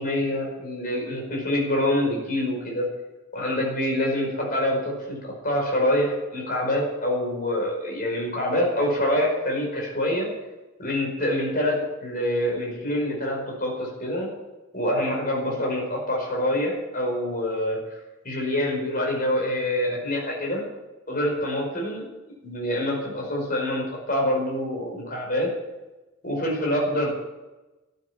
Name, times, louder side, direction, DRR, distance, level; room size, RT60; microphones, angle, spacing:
voice 1, 0.0-2.9 3.3-10.3 10.8-14.3 14.7-18.0 18.2-20.6 21.1-22.0 22.4-25.5 26.2-27.1, left 1 dB, 45° left, -1 dB, 5.1 m, -26 dB
13.5 x 9.4 x 8.8 m, 1.1 s
head